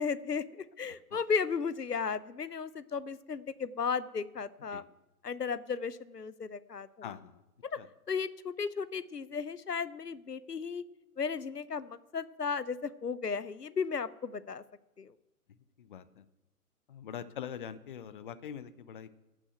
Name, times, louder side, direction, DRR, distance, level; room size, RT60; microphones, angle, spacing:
voice 1, 0.0-4.8 5.2-7.1 7.6-7.8 8.1-10.8 11.2-14.6 15.0-15.1, left 5 dB, 85° left, 16 dB, 0.8 m, -35 dB
voice 2, 7.0-7.4 7.8-7.9 15.8-16.2 16.9-19.2, left 8 dB, 35° left, 13 dB, 0.7 m, -43 dB
15.5 x 6.2 x 8.9 m, 0.99 s
figure-of-eight pair, 125°, 46 cm